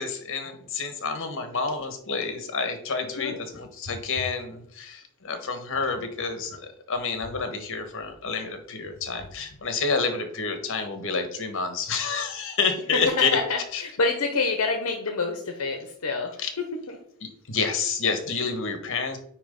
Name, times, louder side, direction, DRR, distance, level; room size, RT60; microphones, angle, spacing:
voice 1, 0.0-13.4 13.7-13.8 16.4-16.5 17.2-19.2, left 4 dB, 65° left, 7 dB, 1.3 m, -29 dB
voice 2, 12.9-17.0, left 3 dB, 80° left, 4 dB, 0.9 m, -27 dB
8.9 x 3.0 x 5.2 m, 0.67 s
head